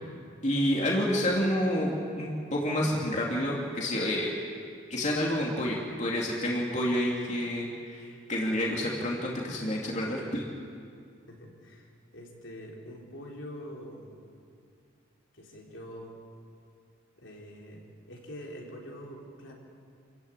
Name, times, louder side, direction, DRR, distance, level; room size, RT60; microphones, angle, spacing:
voice 1, 0.4-4.4 4.9-10.4, left 1 dB, 35° left, -3 dB, 2.9 m, -29 dB
voice 2, 11.3-14.2 15.3-16.2 17.2-17.8 18.1-19.5, equal, 70° left, -1 dB, 4.2 m, -44 dB
28.0 x 15.5 x 9.1 m, 2.3 s
head